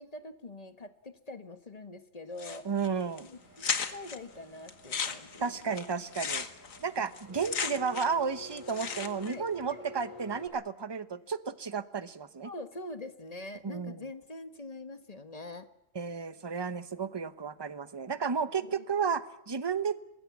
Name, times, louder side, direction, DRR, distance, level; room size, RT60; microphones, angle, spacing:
voice 1, 0.0-2.7 3.2-5.7 9.2-9.8 12.4-15.7 18.6-18.8, left 2 dB, 30° left, 9 dB, 1.3 m, -44 dB
sound 1, 2.4-2.9 3.2-3.3 3.6-4.2 4.7-8.2 8.5-9.3, left 6 dB, 65° left, 1.8 m, -35 dB
voice 2, 2.6-3.3 5.4-6.5 6.8-12.5 13.6-14.0 15.9-20.0, right 6 dB, 20° right, 12 dB, 0.8 m, -33 dB
Engine, 3.3-10.5, left 2 dB, 15° left, 8.1 m, -50 dB
25.5 x 20.0 x 8.4 m, 0.84 s
omnidirectional pair, 1.5 m